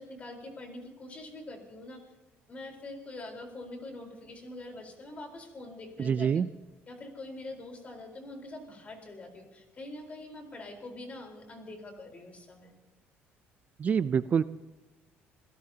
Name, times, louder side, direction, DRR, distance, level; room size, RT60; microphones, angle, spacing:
voice 1, 0.0-2.0 2.5-6.4 6.9-12.7, left 2 dB, 30° left, 3 dB, 4.1 m, -44 dB
voice 2, 6.0-6.5 13.8-14.4, right 7 dB, 35° right, 14 dB, 0.4 m, -26 dB
27.0 x 17.5 x 2.8 m, 1.1 s
cardioid pair, 130°, 5 cm